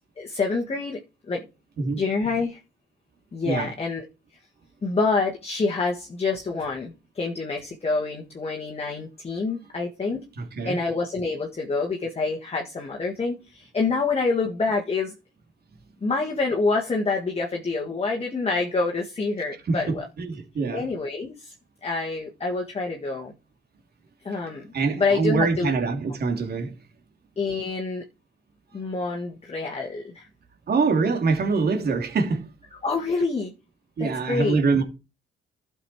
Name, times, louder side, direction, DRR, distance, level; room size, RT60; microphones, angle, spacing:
voice 1, 0.2-1.0 1.3-1.5 2.0-2.6 3.3-4.0 4.8-10.2 10.6-15.1 16.0-20.0 20.7-21.5 21.8-23.3 24.2-24.7 25.0-25.7 27.4-28.0 28.7-30.3 32.8-33.5 34.0-34.6, left 3 dB, 30° left, 1.7 m, -27 dB
voice 2, 10.4-10.8 19.7-20.8 24.7-26.7 30.7-32.5 34.0-34.8, right 4 dB, 50° right, 2.8 m, -24 dB
12.0 x 6.2 x 4.7 m
cardioid pair, 90°, 20 cm